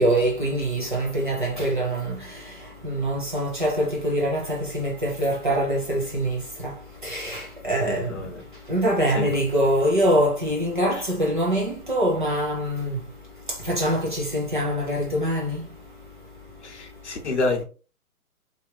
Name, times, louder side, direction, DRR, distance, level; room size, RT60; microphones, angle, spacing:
voice 1, 0.0-2.2 2.8-6.7 7.0-8.2 8.7-13.0 13.7-15.6, right 1 dB, 35° right, 0.7 m, -24 dB
voice 2, 7.8-8.4 9.1-9.3 16.6-17.6, left 3 dB, 50° left, 0.9 m, -28 dB
2.9 x 2.5 x 2.8 m
hypercardioid pair, 180°, 44 cm